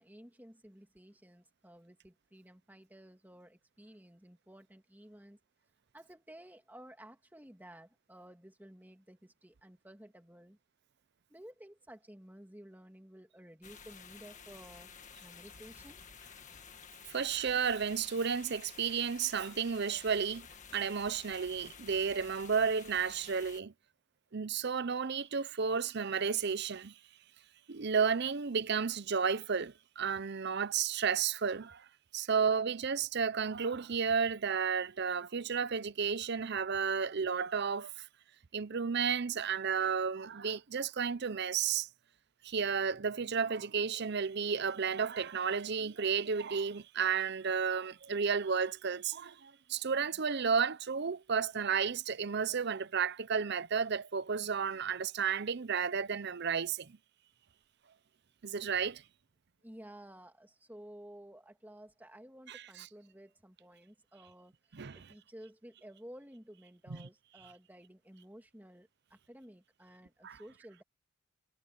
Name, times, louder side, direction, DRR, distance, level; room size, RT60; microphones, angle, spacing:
voice 1, 0.0-5.4 5.9-10.6 11.3-14.9 15.2-16.0 59.6-70.8, equal, 10° right, 2.5 m, -54 dB
sound 1, 13.6-23.6, left 6 dB, 35° left, 1.9 m, -53 dB
voice 2, 17.1-20.5 20.7-23.7 24.3-26.9 27.7-31.8 32.1-38.1 38.5-41.9 42.4-57.0 58.4-59.0 62.5-62.6 64.7-65.0 66.9-67.0 70.2-70.4, right 6 dB, 50° right, 0.6 m, -32 dB
head